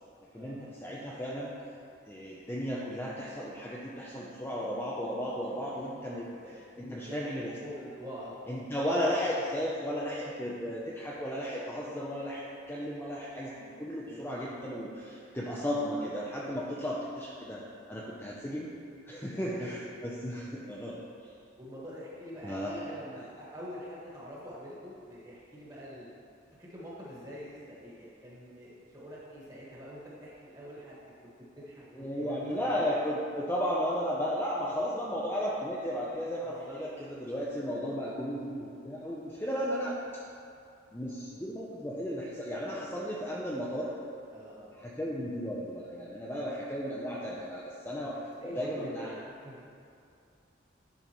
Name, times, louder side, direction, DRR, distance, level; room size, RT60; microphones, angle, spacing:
voice 1, 0.3-1.5 2.1-6.3 6.8-7.5 8.5-17.6 17.9-18.7 19.1-21.0 22.4-22.8 31.9-40.0 40.9-43.9 44.8-49.1, equal, 10° left, -6 dB, 0.6 m, -34 dB
voice 2, 6.3-8.7 10.7-10.8 14.1-14.5 19.3-19.7 21.6-26.1 26.6-31.0 31.6-31.8 32.2-32.8 36.4-36.8 44.3-44.9 48.4-49.6, equal, 20° right, -7 dB, 1.6 m, -45 dB
10.5 x 5.4 x 3.1 m, 2.5 s
head